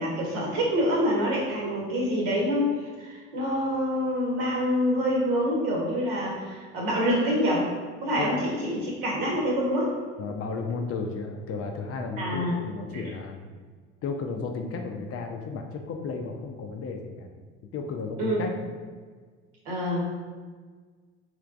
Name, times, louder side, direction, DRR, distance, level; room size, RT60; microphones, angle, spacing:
voice 1, 0.0-7.7 8.0-9.9 12.2-12.5 12.9-13.1 18.2-18.4 19.6-20.1, equal, 65° right, -3 dB, 1.2 m, -26 dB
voice 2, 10.2-13.4 14.0-17.3 17.7-18.7, left 4 dB, 40° left, 4 dB, 0.5 m, -33 dB
3.2 x 3.0 x 2.5 m, 1.5 s
hypercardioid pair, 60°, 36 cm